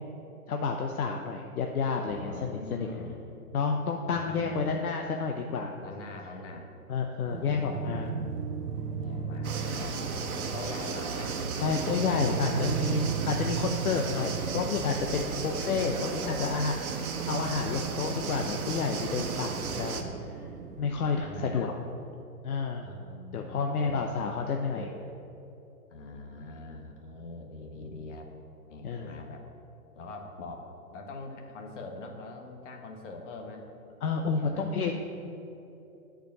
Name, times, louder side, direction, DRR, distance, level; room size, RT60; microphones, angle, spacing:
voice 1, 0.5-2.9 3.5-5.7 6.9-8.1 11.6-20.1 20.8-21.8 22.4-22.8 23.3-24.9 28.8-29.1 34.0-34.9, left 5 dB, 70° left, 3 dB, 0.8 m, -30 dB
voice 2, 2.0-3.3 4.1-4.8 5.8-6.7 7.2-8.2 9.0-10.0 10.3-11.4 15.3-16.5 19.3-20.2 21.2-21.7 22.8-24.1 24.6-24.9 25.9-28.3 28.7-29.4 29.9-33.7 34.2-34.7, left 2 dB, 50° left, 3 dB, 1.5 m, -43 dB
sound 1, 7.3-21.2, right 7 dB, 85° right, 0.8 m, -37 dB
sound 2, 9.4-20.0, right 5 dB, 65° right, 1.2 m, -35 dB
8.1 x 5.1 x 7.4 m, 3.0 s
hypercardioid pair, 145°, 46 cm